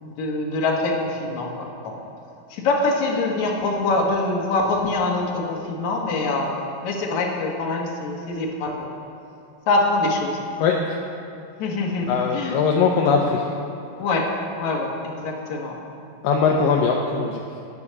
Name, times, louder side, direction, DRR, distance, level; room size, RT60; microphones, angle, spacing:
voice 1, 0.0-2.0 2.5-6.5 6.8-8.9 9.7-10.4 11.6-12.6 14.0-14.3 14.6-15.8, left 2 dB, 55° left, -1 dB, 2.4 m, -24 dB
voice 2, 10.6-11.0 12.1-13.4 16.2-17.4, left 5 dB, 75° left, 0 dB, 2.2 m, -20 dB
9.7 x 9.7 x 6.6 m, 2.8 s
omnidirectional pair, 4.5 m